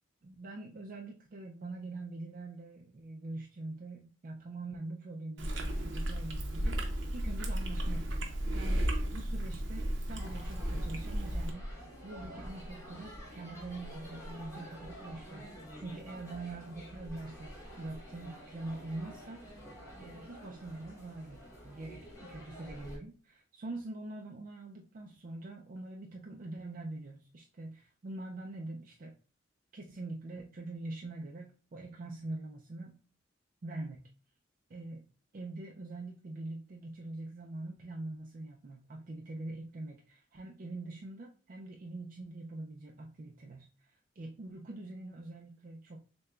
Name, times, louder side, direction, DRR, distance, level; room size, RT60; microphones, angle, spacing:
voice 1, 0.2-11.7 12.0-19.4 20.0-29.1 29.7-33.0 33.6-34.1 34.7-35.1 35.3-46.0, right 2 dB, 45° right, 1 dB, 0.4 m, -44 dB
Chewing mastication, 5.4-11.5, right 1 dB, 90° right, 0.8 m, -34 dB
sound 1, 10.2-23.0, equal, 15° left, 1.3 m, -47 dB
6.5 x 2.2 x 2.3 m, 0.38 s
head